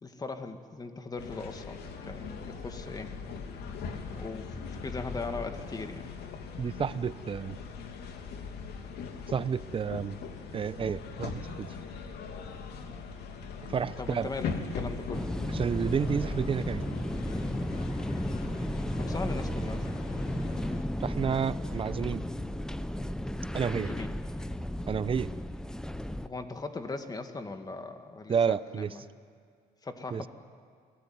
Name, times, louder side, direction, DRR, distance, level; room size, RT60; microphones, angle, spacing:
voice 1, 0.0-3.1 4.1-6.1 14.0-15.3 18.7-19.8 23.7-24.2 26.2-29.1 29.8-30.3, left 3 dB, 20° left, 7 dB, 2.2 m, -39 dB
sound 1, 1.2-20.8, left 5 dB, 75° left, 2.8 m, -40 dB
voice 2, 6.6-7.6 9.3-10.2 10.5-11.7 13.7-14.3 15.5-16.9 21.0-22.3 23.5-23.9 24.9-25.3 28.3-28.9 30.1-30.2, right 6 dB, 30° right, 16 dB, 0.8 m, -30 dB
sound 2, 15.1-26.3, left 1 dB, 5° left, 0.8 m, -34 dB
29.0 x 19.5 x 9.6 m, 2.1 s
cardioid pair, 110°, 17 cm